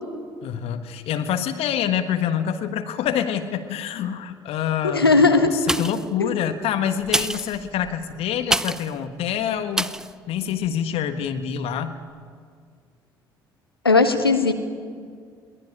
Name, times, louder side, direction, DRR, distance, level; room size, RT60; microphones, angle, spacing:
voice 1, 0.4-9.9 10.3-12.0, left 9 dB, 55° left, 8 dB, 1.4 m, -26 dB
voice 2, 4.9-5.5 6.2-6.3 13.8-14.5, left 3 dB, 90° left, 7 dB, 1.3 m, -17 dB
sound 1, 5.6-6.2 7.0-9.0 9.7-10.1 10.6-10.7, right 1 dB, 5° right, 0.7 m, -27 dB
22.5 x 18.5 x 9.9 m, 2.1 s
figure-of-eight pair, 55°, 12 cm